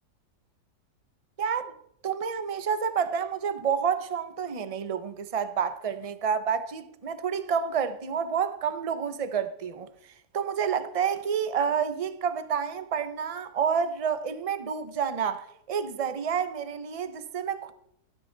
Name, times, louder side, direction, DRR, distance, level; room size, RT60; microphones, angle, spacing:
voice 1, 1.4-1.7 2.0-9.9 10.3-17.7, right 7 dB, 30° right, 0.6 m, -29 dB
17.5 x 13.0 x 4.0 m
omnidirectional pair, 1.8 m